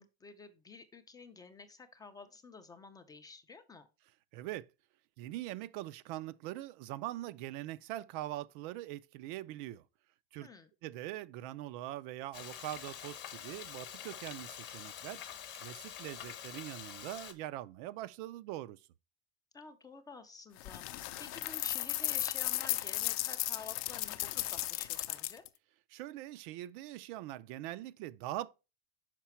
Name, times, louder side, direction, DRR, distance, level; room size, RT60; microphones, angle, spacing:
voice 1, 0.0-3.9 10.4-10.7 19.5-25.4, left 4 dB, 15° left, 0.4 m, -51 dB
voice 2, 4.3-4.7 5.2-9.8 10.3-10.5 10.8-15.2 15.5-18.8 25.9-28.5, right 15 dB, 60° right, 0.4 m, -42 dB
Frying (food), 12.3-17.3, left 10 dB, 35° left, 1.0 m, -46 dB
sound 1, 20.6-25.5, left 16 dB, 60° left, 0.6 m, -35 dB
5.9 x 4.9 x 4.4 m
supercardioid pair, 150°, 30 cm